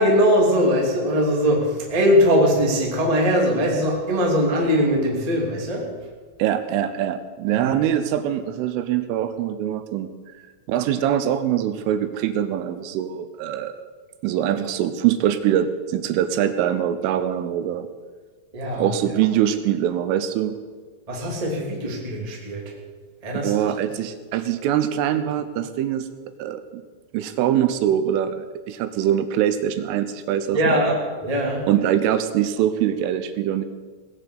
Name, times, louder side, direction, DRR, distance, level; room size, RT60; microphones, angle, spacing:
voice 1, 0.0-5.9 7.5-7.8 18.5-18.9 21.1-22.7 23.2-23.5 30.5-31.7, equal, 15° right, -1 dB, 1.2 m, -21 dB
voice 2, 6.4-10.1 10.7-13.8 14.2-17.9 18.7-20.6 23.3-26.1 26.4-26.8 27.1-30.8 31.7-33.7, right 10 dB, 80° right, 10 dB, 3.2 m, -23 dB
18.5 x 8.2 x 8.1 m, 1.4 s
omnidirectional pair, 5.9 m